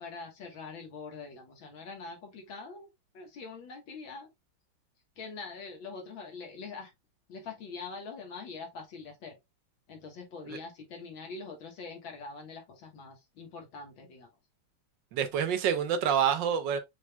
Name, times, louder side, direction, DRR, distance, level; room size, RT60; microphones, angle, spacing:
voice 1, 0.0-2.9 3.1-4.3 5.2-6.9 7.3-9.4 9.9-14.3, left 4 dB, 70° left, 2.2 m, -44 dB
voice 2, 15.1-16.8, right 8 dB, 70° right, 1.3 m, -27 dB
6.3 x 3.5 x 2.3 m
omnidirectional pair, 2.3 m